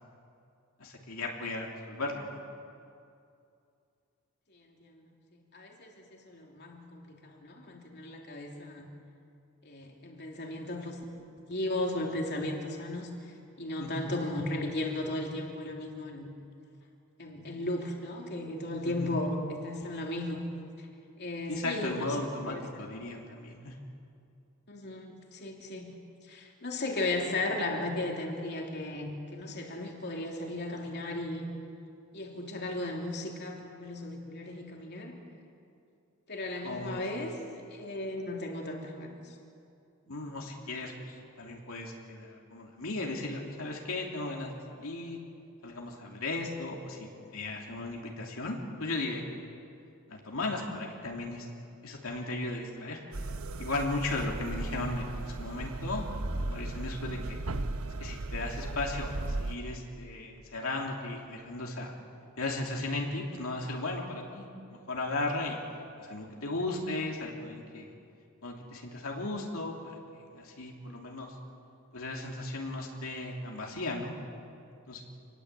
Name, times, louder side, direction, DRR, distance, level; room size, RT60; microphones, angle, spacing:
voice 1, 0.8-2.4 13.8-14.1 18.8-19.2 21.5-23.8 36.6-37.0 40.1-44.5 44.8-45.2 45.6-49.2 50.1-51.5 51.8-53.0 53.6-56.1 56.4-57.4 58.0-61.9 62.4-65.6 66.0-67.9 68.4-71.3 71.9-74.1 74.9-75.0, left 2 dB, 70° left, -1 dB, 3.0 m, -36 dB
voice 2, 4.5-5.0 5.5-8.9 9.6-11.0 11.5-13.1 13.6-16.3 17.2-20.4 21.2-22.1 22.4-22.6 24.7-25.9 26.3-31.4 32.1-35.2 36.3-37.4 37.7-39.2, left 1 dB, 50° left, 0 dB, 3.2 m, -35 dB
train toilet drain Moscow to Voronezh, 53.1-59.6, right 2 dB, 75° right, 1.2 m, -36 dB
27.0 x 21.0 x 8.3 m, 2.5 s
head